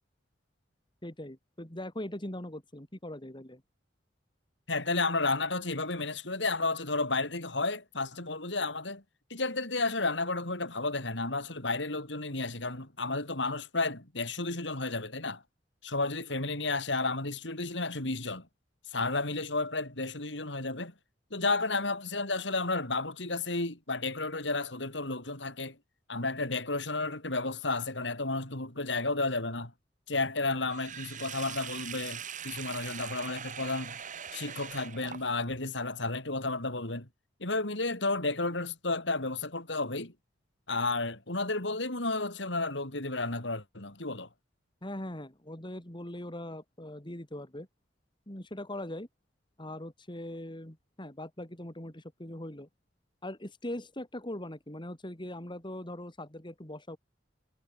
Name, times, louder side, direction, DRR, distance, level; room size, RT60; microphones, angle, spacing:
voice 1, 1.0-3.6 44.8-47.7 48.3-49.1 49.6-52.7 53.2-57.0, left 1 dB, 25° left, 3.2 m, -41 dB
voice 2, 4.7-9.0 9.3-15.4 15.8-18.5 18.9-20.9 21.3-25.8 26.1-29.7 30.1-34.0 34.3-37.1 37.4-40.1 40.7-44.3, left 3 dB, 70° left, 5.1 m, -32 dB
Sink (filling or washing), 30.7-35.6, right 8 dB, 45° right, 1.8 m, -42 dB
head